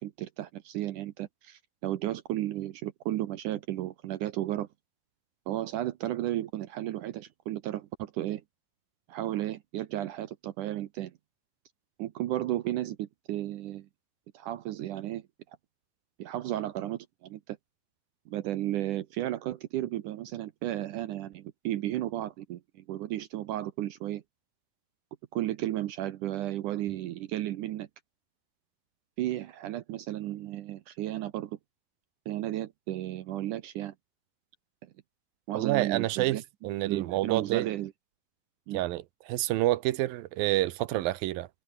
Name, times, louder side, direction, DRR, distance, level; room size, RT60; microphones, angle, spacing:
voice 1, 0.0-4.7 5.5-8.4 9.1-11.1 12.0-13.9 14.3-15.2 16.2-17.6 18.3-24.2 25.3-27.9 29.2-31.6 32.3-33.9 34.8-34.9 35.5-36.4 36.9-37.9 38.7-38.8, right 13 dB, 70° right, 2.3 m, -33 dB
voice 2, 35.5-37.7 38.7-41.5, right 16 dB, 85° right, 2.7 m, -28 dB
omnidirectional pair, 4.1 m